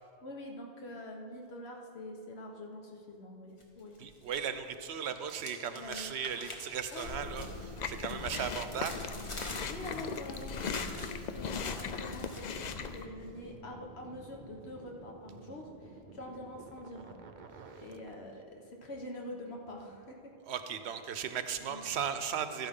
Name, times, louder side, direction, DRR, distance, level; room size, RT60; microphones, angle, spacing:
voice 1, 0.2-4.0 5.7-6.1 6.9-7.3 8.2-8.9 9.6-17.2 17.8-20.3 21.6-21.8, left 1 dB, 75° left, 1 dB, 1.6 m, -45 dB
sound 1, 3.6-4.5 4.7-12.6, left 1 dB, 30° left, 1.2 m, -47 dB
voice 2, 4.0-9.0 20.5-22.7, right 8 dB, 90° right, 9 dB, 1.0 m, -37 dB
Chewing mastication, 7.0-13.1, left 5 dB, 50° left, 0.6 m, -39 dB
sound 2, 7.1-18.2, right 4 dB, 50° right, 0.8 m, -52 dB
13.0 x 10.5 x 3.7 m, 2.4 s
omnidirectional pair, 1.1 m